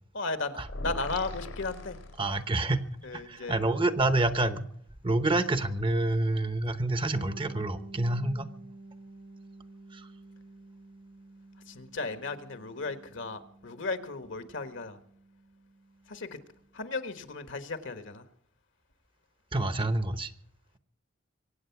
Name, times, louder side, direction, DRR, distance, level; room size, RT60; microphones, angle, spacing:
voice 1, 0.1-2.0 3.0-3.6 11.7-15.0 16.1-16.4 16.7-18.2, left 3 dB, 65° left, 10 dB, 1.4 m, -35 dB
sound 1, 0.6-2.8, left 2 dB, 90° left, 3.0 m, -40 dB
voice 2, 2.2-2.9 3.1-4.7 5.0-8.5 9.9-10.1 19.5-20.3, right 2 dB, 25° right, 12 dB, 0.9 m, -28 dB
Bass guitar, 7.1-16.7, right 2 dB, 80° right, 1.3 m, -50 dB
24.0 x 8.9 x 5.9 m, 0.66 s
head